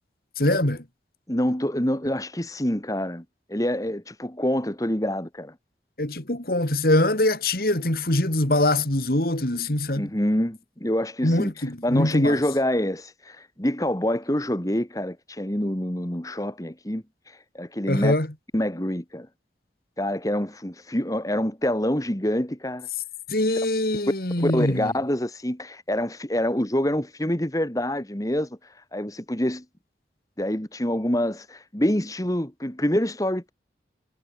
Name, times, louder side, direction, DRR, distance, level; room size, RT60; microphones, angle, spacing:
voice 1, 0.4-0.8 6.0-10.1 11.2-12.4 17.9-18.3 23.3-24.9, left 1 dB, 55° left, 3.0 m, -23 dB
voice 2, 1.3-3.2 3.5-5.5 10.0-11.5 11.8-18.1 18.5-19.3 20.0-22.9 24.4-29.6 30.4-33.5, left 1 dB, 20° left, 2.0 m, -26 dB
head